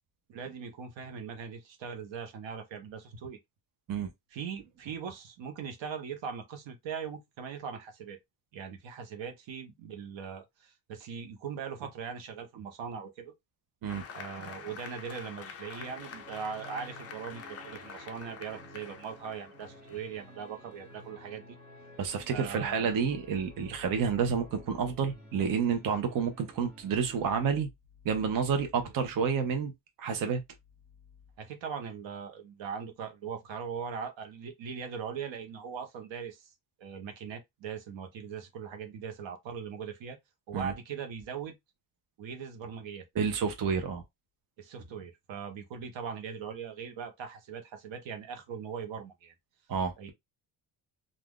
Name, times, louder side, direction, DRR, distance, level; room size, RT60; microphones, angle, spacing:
voice 1, 0.3-3.4 4.3-8.2 8.5-13.3 14.1-21.6 22.3-23.0 28.8-28.9 31.4-36.5 36.8-40.2 40.5-41.6 42.2-43.1 44.6-49.3 50.0-50.1, right 6 dB, 85° right, 1.0 m, -40 dB
Applause, 13.9-21.1, left 6 dB, 35° left, 0.4 m, -47 dB
sound 1, 15.8-27.5, right 1 dB, 20° right, 0.8 m, -53 dB
voice 2, 22.0-27.7 28.0-29.7 30.0-30.4 40.5-40.7 43.2-44.0 49.7-50.1, right 6 dB, 50° right, 0.6 m, -29 dB
2.5 x 2.3 x 3.6 m
cardioid pair, 175°, 44 cm